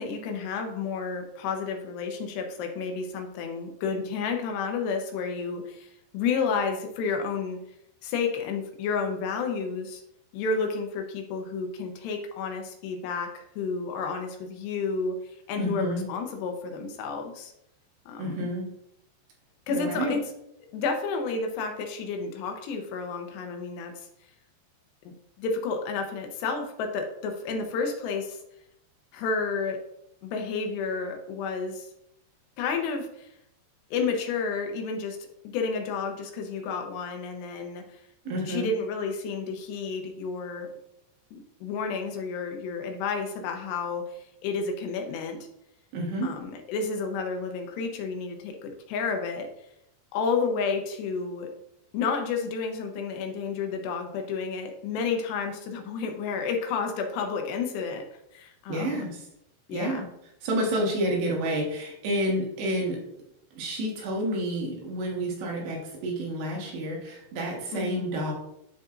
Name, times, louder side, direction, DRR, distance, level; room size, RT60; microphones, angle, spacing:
voice 1, 0.0-7.6 8.0-10.0 10.3-17.5 18.1-18.4 19.7-20.2 20.7-24.1 25.1-28.4 29.1-29.8 30.2-31.9 32.6-33.3 33.9-35.2 35.4-38.0 38.5-40.7 41.3-45.4 46.2-49.5 50.1-51.5 51.9-58.0 58.3-59.1 59.7-60.1 67.7-68.1, left 5 dB, 80° left, 4 dB, 3.0 m, -31 dB
voice 2, 15.6-16.0 18.2-18.6 19.7-20.2 38.3-38.7 45.9-46.3 58.7-59.3 59.7-60.1 60.4-63.0 63.6-68.3, right 1 dB, 80° right, -2 dB, 3.7 m, -29 dB
12.5 x 4.2 x 2.5 m, 0.77 s
omnidirectional pair, 5.0 m